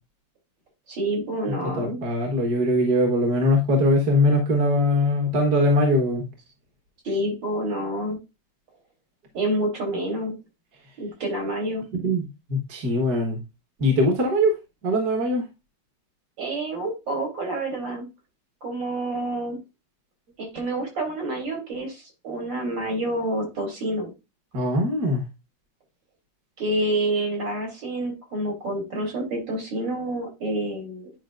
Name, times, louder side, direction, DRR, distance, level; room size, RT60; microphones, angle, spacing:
voice 1, 0.9-2.0 7.0-8.2 9.3-10.4 11.0-11.8 16.4-18.1 18.6-19.6 20.4-24.1 26.6-31.1, right 1 dB, 85° right, 0 dB, 4.4 m, -28 dB
voice 2, 1.8-6.2 11.9-13.4 13.8-15.5 24.5-25.2, left 1 dB, 55° right, 2 dB, 2.0 m, -21 dB
10.0 x 5.1 x 2.5 m, 0.25 s
omnidirectional pair, 2.0 m